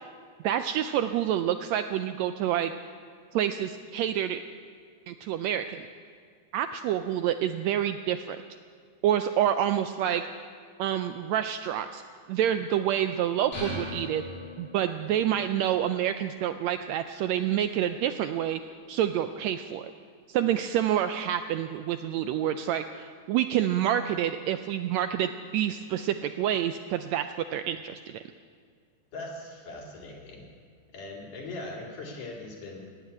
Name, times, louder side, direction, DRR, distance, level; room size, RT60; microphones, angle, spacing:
voice 1, 0.4-2.7 3.3-4.4 5.1-5.9 6.5-8.4 9.0-10.3 10.8-12.0 12.3-14.2 14.6-18.6 18.9-19.9 20.3-28.2, right 10 dB, 80° right, 9 dB, 1.6 m, -28 dB
sound 1, 13.5-15.1, left 1 dB, 50° left, 5.8 m, -38 dB
voice 2, 29.1-30.5 30.9-32.8, left 2 dB, 90° left, -2 dB, 4.2 m, -40 dB
15.5 x 8.2 x 9.6 m, 2.1 s
omnidirectional pair, 3.5 m